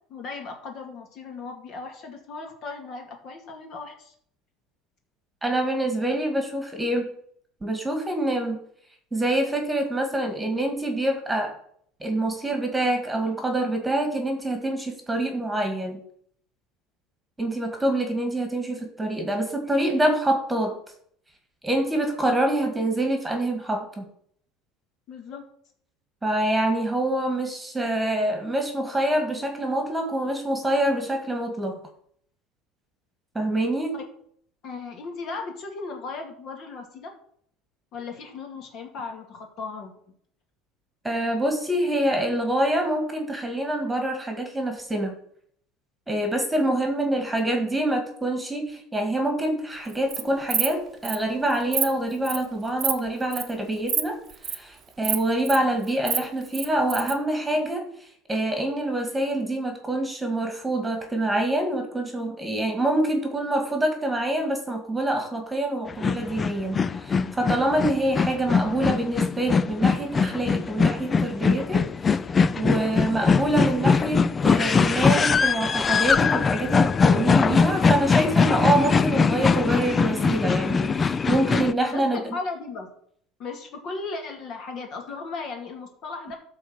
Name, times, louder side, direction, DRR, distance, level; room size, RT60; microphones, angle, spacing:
voice 1, 0.1-4.1 25.1-25.5 33.9-34.0 34.6-37.1 37.9-39.9 81.9-82.9 83.4-86.3, left 4 dB, 45° left, 3 dB, 2.2 m, -36 dB
voice 2, 5.4-7.1 7.6-8.6 9.1-11.5 12.0-16.0 17.4-20.8 21.6-24.1 26.2-31.8 33.4-33.9 41.0-45.2 46.1-54.2 54.5-57.8 58.3-71.8 72.6-82.2, right 1 dB, 10° right, 4 dB, 1.9 m, -26 dB
Insect, 49.9-50.2 50.5-50.7 51.0-51.2 51.5-51.9 52.2-52.5 52.8-53.0 53.3-53.5 53.9-54.0 54.3-54.6 55.0-55.6 55.9-57.1, right 8 dB, 30° right, 1.0 m, -26 dB
sound 1, 65.9-81.7, left 5 dB, 20° left, 0.4 m, -22 dB
12.0 x 4.2 x 7.4 m, 0.64 s
cardioid pair, 140°, 0 cm